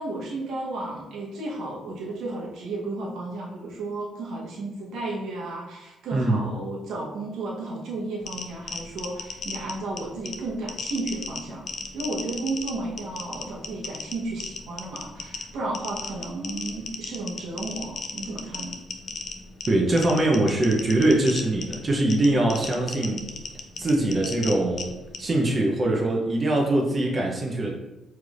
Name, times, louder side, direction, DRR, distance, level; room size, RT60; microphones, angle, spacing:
voice 1, 0.0-11.7 11.9-18.7, right 2 dB, 75° right, -4 dB, 1.0 m, -33 dB
sound 1, 8.2-25.3, left 4 dB, 55° left, 0.5 m, -37 dB
voice 2, 19.7-23.3 23.8-24.9 25.2-27.7, right 1 dB, 35° right, -1 dB, 0.7 m, -22 dB
4.5 x 3.2 x 2.5 m, 1.0 s
cardioid pair, 90°, 0 cm